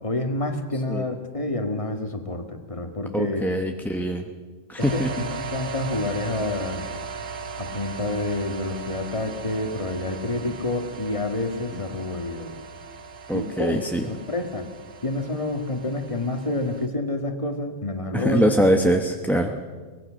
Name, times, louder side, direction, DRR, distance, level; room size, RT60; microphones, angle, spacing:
voice 1, 0.0-3.5 4.9-6.8 7.6-12.5 13.3-13.8 14.1-14.7 15.0-18.6 19.4-19.7, left 2 dB, 25° left, 5 dB, 1.9 m, -28 dB
voice 2, 3.1-4.2 4.7-5.3 13.3-14.0 18.1-19.5, equal, ahead, 4 dB, 0.9 m, -23 dB
sound 1, 4.8-16.9, right 5 dB, 70° right, 1.5 m, -38 dB
24.0 x 19.5 x 6.4 m, 1.4 s
omnidirectional pair, 1.4 m